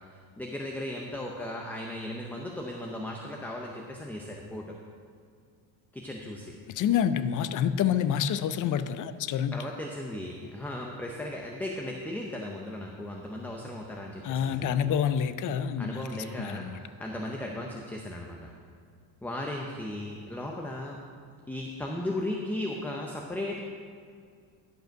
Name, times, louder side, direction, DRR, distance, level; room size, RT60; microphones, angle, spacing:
voice 1, 0.4-4.7 5.9-6.6 9.5-14.9 15.8-18.5 19.2-21.0 21.5-23.6, left 1 dB, 5° left, 0 dB, 0.7 m, -36 dB
voice 2, 6.7-9.6 14.2-16.8, left 8 dB, 40° left, 12 dB, 0.5 m, -28 dB
11.5 x 5.4 x 6.4 m, 2.3 s
cardioid pair, 115°, 50 cm